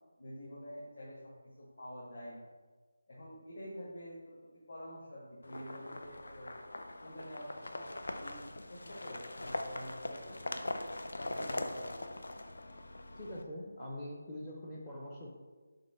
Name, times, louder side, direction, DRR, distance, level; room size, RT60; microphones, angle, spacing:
voice 1, 0.2-2.5 3.1-6.5 7.0-10.6 11.2-12.1, equal, 50° left, -7 dB, 1.4 m, -48 dB
sound 1, 5.4-13.4, left 1 dB, 70° left, 0.6 m, -41 dB
voice 2, 13.2-15.3, left 1 dB, 10° left, -3 dB, 0.5 m, -43 dB
7.4 x 2.9 x 5.7 m, 1.3 s
figure-of-eight pair, 180°, 0 cm